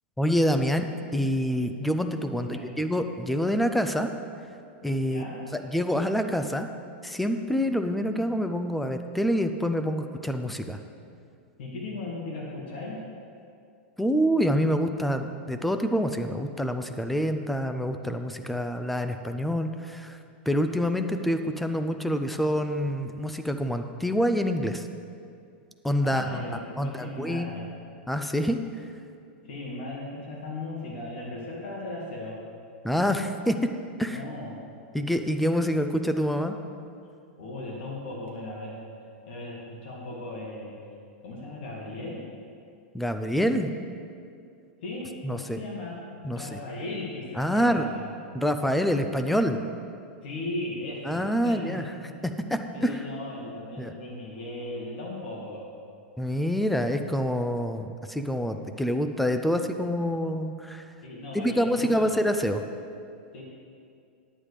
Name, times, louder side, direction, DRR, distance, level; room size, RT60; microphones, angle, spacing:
voice 1, 0.2-4.1 4.8-5.2 5.5-6.7 7.0-10.8 14.0-20.2 20.5-24.8 25.8-26.4 26.8-27.6 28.1-28.6 32.8-33.6 34.0-34.2 34.9-36.5 42.9-43.7 45.2-45.6 46.2-46.6 47.4-47.9 48.3-49.6 51.1-51.8 52.5-53.0 53.8-53.9 56.2-60.8 61.3-62.6, equal, ahead, 7 dB, 0.4 m, -26 dB
voice 2, 2.3-2.6 5.1-5.4 11.6-13.0 26.0-27.7 29.4-32.4 34.0-34.6 37.4-38.8 39.3-40.7 41.2-42.2 44.8-46.0 46.3-48.1 50.2-51.7 52.7-55.6 61.0-62.1 63.3-63.4, left 2 dB, 60° left, -3 dB, 2.3 m, -37 dB
10.0 x 8.9 x 5.0 m, 2.4 s
supercardioid pair, 165°, 6 cm